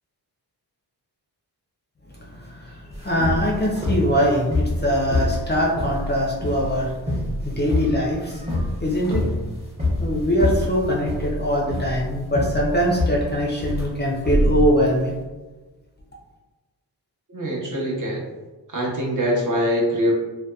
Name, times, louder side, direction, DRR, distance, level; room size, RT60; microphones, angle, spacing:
voice 1, 2.1-9.3 10.0-15.1, equal, 25° left, -3 dB, 0.4 m, -23 dB
sound 1, 2.9-15.1, left 1 dB, 15° right, 0.7 m, -25 dB
voice 2, 17.3-18.2 18.7-20.1, equal, 50° right, -3 dB, 0.7 m, -23 dB
2.7 x 2.1 x 2.2 m, 1.2 s
wide cardioid pair, 95°, 41 cm